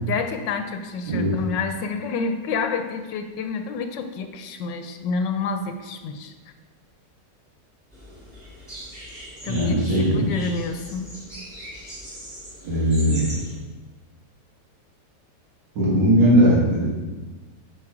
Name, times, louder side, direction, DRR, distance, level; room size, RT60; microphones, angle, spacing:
voice 1, 0.1-6.3 9.4-11.1, left 5 dB, 85° left, 7 dB, 1.3 m, -29 dB
sound 1, 7.9-13.6, equal, 25° right, 2.7 m, -40 dB
voice 2, 9.4-10.3 12.6-13.3 15.8-16.9, equal, 85° right, -8 dB, 2.5 m, -19 dB
8.9 x 3.9 x 4.8 m, 1.3 s
omnidirectional pair, 1.9 m